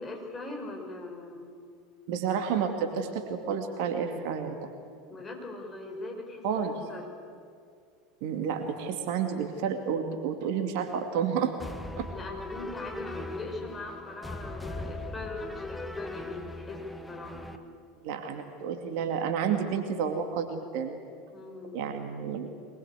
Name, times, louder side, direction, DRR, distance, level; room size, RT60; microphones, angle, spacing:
voice 1, 0.0-1.5 5.1-6.5 6.9-7.1 12.1-16.8 17.1-17.8 21.3-21.9, left 2 dB, 25° left, 1 dB, 6.1 m, -40 dB
voice 2, 2.1-4.7 6.4-6.8 8.2-11.5 12.0-12.1 18.0-21.0 21.7-22.6, right 7 dB, 55° right, 5 dB, 2.4 m, -30 dB
sound 1, 11.6-17.6, left 1 dB, 5° left, 1.6 m, -40 dB
23.0 x 21.0 x 8.3 m, 2.2 s
figure-of-eight pair, 75°, 0 cm